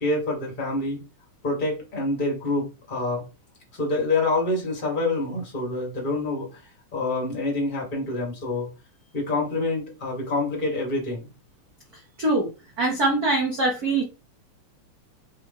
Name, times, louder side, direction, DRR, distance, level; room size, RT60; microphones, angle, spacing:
voice 1, 0.0-1.0 1.4-3.2 3.7-6.5 6.9-8.7 9.1-11.3, left 2 dB, 25° left, -1 dB, 1.2 m, -26 dB
voice 2, 12.8-14.0, right 2 dB, 85° right, -1 dB, 0.8 m, -22 dB
4.4 x 3.3 x 3.6 m, 0.30 s
omnidirectional pair, 3.4 m